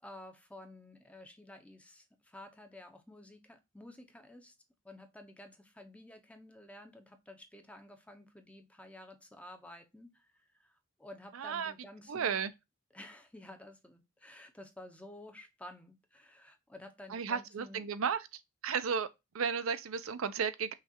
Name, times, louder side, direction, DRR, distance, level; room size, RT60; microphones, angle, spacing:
voice 1, 0.0-4.5 4.8-12.4 12.9-17.9, left 1 dB, 5° left, 0.6 m, -52 dB
voice 2, 11.4-11.7 12.1-12.5 17.1-18.2 18.6-19.1 19.3-20.7, right 6 dB, 70° right, 0.5 m, -33 dB
5.8 x 2.4 x 2.7 m
head